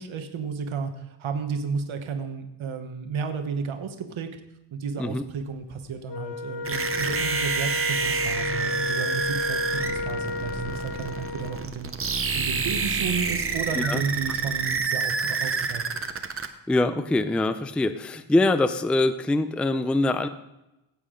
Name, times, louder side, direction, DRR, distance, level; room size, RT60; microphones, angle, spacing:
voice 1, 0.0-4.3 4.7-11.9 12.3-16.1, right 5 dB, 75° right, 6 dB, 1.1 m, -32 dB
Wind instrument woodwind instrument, 6.1-11.7, left 3 dB, 60° left, 1.3 m, -32 dB
sound 1, 6.6-16.5, right 5 dB, 30° right, 0.7 m, -28 dB
voice 2, 16.7-20.3, left 2 dB, 5° left, 11 dB, 0.3 m, -23 dB
15.5 x 8.4 x 3.7 m, 0.94 s
wide cardioid pair, 160°, 48 cm